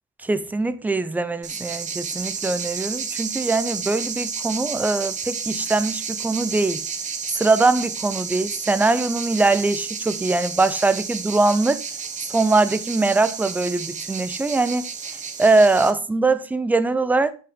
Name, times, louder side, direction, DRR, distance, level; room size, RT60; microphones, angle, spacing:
voice 1, 0.2-6.8 7.4-11.8 12.3-14.9 15.4-17.3, right 3 dB, 5° right, 0.4 m, -21 dB
sound 1, 1.4-15.9, right 6 dB, 25° right, 1.0 m, -31 dB
8.3 x 5.7 x 5.1 m
cardioid pair, 145°, 31 cm